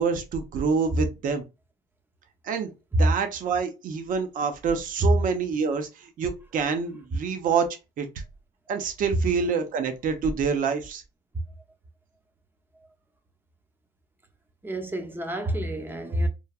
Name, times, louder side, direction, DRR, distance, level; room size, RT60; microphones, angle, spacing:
voice 1, 0.0-1.4 2.4-2.7 3.0-7.7 8.0-8.1 8.7-11.0, right 5 dB, 55° right, 0.6 m, -27 dB
voice 2, 14.6-16.3, right 1 dB, 10° right, 0.6 m, -26 dB
3.1 x 2.2 x 2.3 m
cardioid pair, 110°, 17 cm